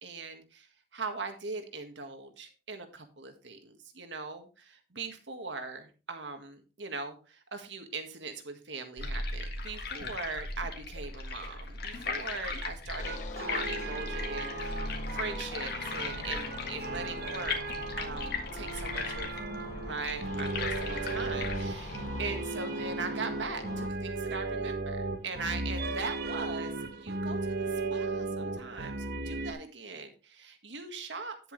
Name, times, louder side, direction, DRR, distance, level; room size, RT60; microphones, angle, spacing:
voice 1, 0.0-0.7 0.9-17.6 18.0-19.3 19.8-31.5, right 4 dB, 85° right, 6 dB, 1.7 m, -40 dB
sound 1, 9.0-22.0, left 3 dB, 60° left, 1.8 m, -37 dB
sound 2, 13.0-23.9, left 2 dB, 45° left, 0.8 m, -44 dB
sound 3, 13.0-29.5, right 3 dB, 60° right, 1.1 m, -36 dB
10.0 x 7.9 x 3.3 m, 0.33 s
head